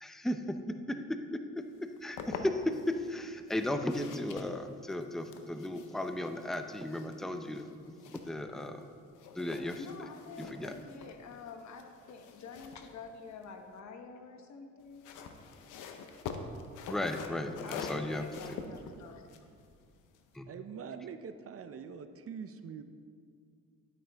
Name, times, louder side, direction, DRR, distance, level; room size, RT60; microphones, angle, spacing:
voice 1, 0.0-1.6 2.0-7.7 8.1-8.9 9.3-9.8 10.4-10.7 16.9-18.6 20.3-20.5, left 1 dB, ahead, 6 dB, 0.6 m, -35 dB
sound 1, 1.8-2.9 3.5-8.9 9.1-13.8 14.8-20.4, left 5 dB, 90° left, 0.8 m, -46 dB
voice 2, 9.8-15.1 17.0-19.3, left 4 dB, 65° left, 5 dB, 1.2 m, -48 dB
voice 3, 20.5-22.8, right 6 dB, 50° right, 9 dB, 0.6 m, -44 dB
11.5 x 9.3 x 3.5 m, 2.2 s
cardioid pair, 90°, 30 cm